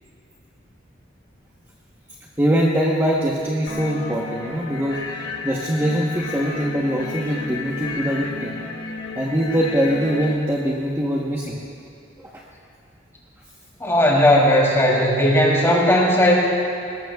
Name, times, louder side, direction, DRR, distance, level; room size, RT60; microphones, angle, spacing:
voice 1, 2.4-5.0 5.4-8.6 9.1-11.6 12.2-12.4, equal, 15° right, -4 dB, 1.0 m, -22 dB
sound 1, 3.7-10.3, left 4 dB, 80° left, 1.7 m, -33 dB
voice 2, 13.8-16.5, left 1 dB, 15° left, -4 dB, 3.1 m, -16 dB
19.5 x 19.5 x 2.4 m, 2.7 s
head